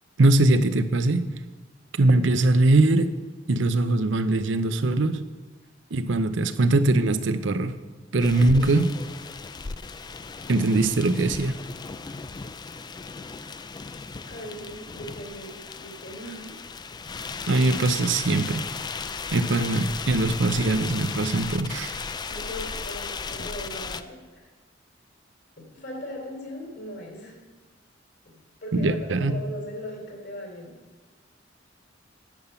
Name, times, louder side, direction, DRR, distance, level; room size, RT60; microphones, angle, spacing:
voice 1, 0.2-1.2 2.0-3.1 3.5-5.2 5.9-7.8 8.1-8.9 10.5-11.6 17.5-18.6 19.3-22.0 28.7-29.3, right 2 dB, 75° right, 11 dB, 0.7 m, -21 dB
sound 1, 8.2-24.0, left 5 dB, 20° left, 0.3 m, -36 dB
voice 2, 14.3-16.5 22.3-24.5 25.6-27.4 28.2-30.7, equal, 60° left, 0 dB, 3.3 m, -39 dB
10.5 x 7.3 x 5.7 m, 1.3 s
head